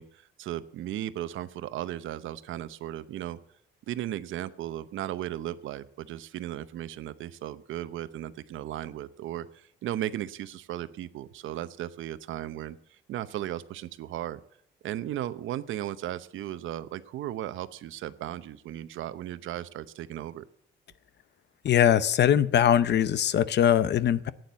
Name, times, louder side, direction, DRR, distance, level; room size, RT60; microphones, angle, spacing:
voice 1, 0.0-3.4 3.9-14.4 14.8-20.4, right 12 dB, 80° right, 14 dB, 0.8 m, -36 dB
voice 2, 21.6-24.3, left 10 dB, 60° left, 17 dB, 0.8 m, -22 dB
11.5 x 9.3 x 8.2 m, 0.69 s
cardioid pair, 90°, 20 cm